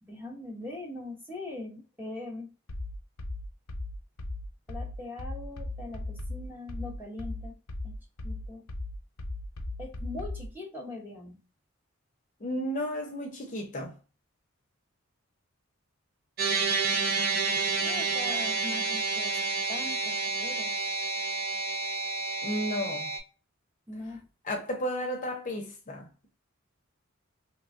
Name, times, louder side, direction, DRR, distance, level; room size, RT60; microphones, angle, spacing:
voice 1, 0.0-2.5 4.7-7.5 7.8-8.0 8.2-8.7 9.8-11.4 17.8-19.4 19.7-20.7 23.9-24.3, left 2 dB, 10° right, 0.8 m, -41 dB
sound 1, 2.7-10.5, left 2 dB, 85° left, 0.6 m, -37 dB
voice 2, 12.4-13.9 22.4-23.1 24.4-26.1, equal, 35° left, 0.6 m, -33 dB
sound 2, 16.4-23.2, right 4 dB, 45° right, 0.5 m, -29 dB
3.1 x 2.2 x 2.5 m
head